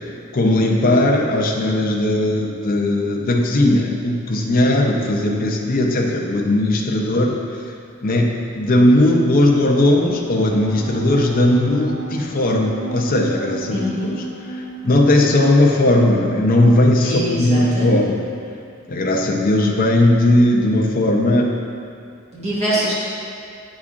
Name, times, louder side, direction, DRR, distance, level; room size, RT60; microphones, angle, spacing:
voice 1, 0.3-7.4 8.0-14.2 14.5-18.2 18.9-21.5, left 1 dB, 40° left, 0 dB, 0.6 m, -17 dB
sound 1, 9.9-17.5, right 3 dB, 80° right, 0.9 m, -34 dB
voice 2, 13.7-14.1 17.0-18.1 22.3-22.9, equal, 30° right, -8 dB, 1.1 m, -23 dB
8.4 x 4.8 x 2.5 m, 2.5 s
head